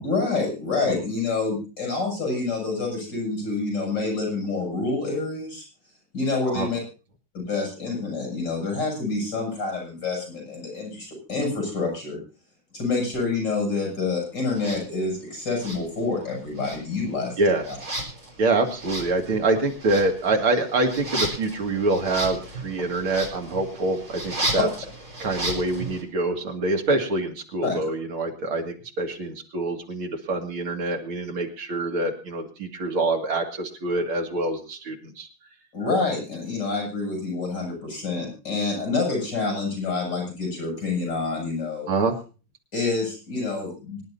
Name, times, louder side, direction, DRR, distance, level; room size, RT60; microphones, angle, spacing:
voice 1, 0.0-5.6 6.1-6.8 7.3-12.2 12.7-17.4 17.7-17.8 27.6-27.7 35.7-41.9 42.7-44.0, left 3 dB, 55° left, 0 dB, 8.3 m, -27 dB
sound 1, 14.5-14.8 15.5-16.3 16.6-26.0, right 1 dB, 50° right, 5.1 m, -34 dB
voice 2, 18.4-24.7 25.2-35.3 41.9-42.1, right 2 dB, 90° right, 3 dB, 3.2 m, -25 dB
25.5 x 11.0 x 2.8 m, 0.34 s
omnidirectional pair, 2.2 m